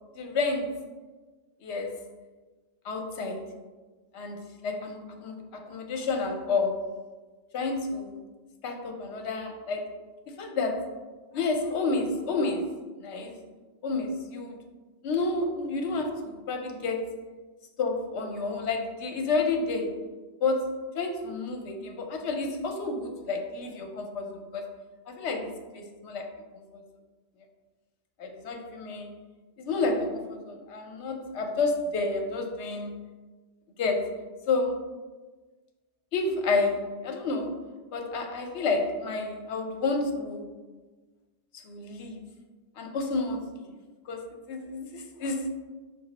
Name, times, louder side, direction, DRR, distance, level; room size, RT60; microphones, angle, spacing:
voice 1, 0.2-0.7 1.6-2.0 2.8-3.4 4.1-6.8 7.5-8.2 8.6-9.9 10.3-10.8 11.3-12.7 13.0-13.4 13.8-14.6 15.0-17.1 17.8-19.9 20.4-20.7 20.9-24.6 25.1-26.3 28.2-29.1 29.6-33.0 33.8-34.1 34.5-34.8 36.1-37.5 37.9-40.4 41.6-42.2 42.8-43.4 44.1-44.2 44.5-45.5, left 3 dB, 70° left, 3 dB, 0.9 m, -30 dB
5.9 x 2.0 x 4.0 m, 1.3 s
omnidirectional pair, 1.2 m